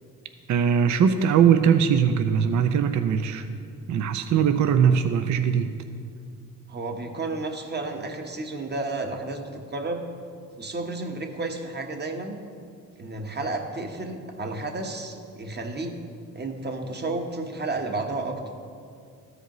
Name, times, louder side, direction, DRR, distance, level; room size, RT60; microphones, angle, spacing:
voice 1, 0.5-3.5 3.9-5.8, right 7 dB, 55° right, 8 dB, 0.5 m, -21 dB
voice 2, 6.7-9.4 9.7-10.1 10.6-12.4 13.0-15.9 16.3-18.5, right 2 dB, 30° right, 3 dB, 1.1 m, -32 dB
13.5 x 5.0 x 3.0 m, 2.3 s
supercardioid pair, 60°, 35 cm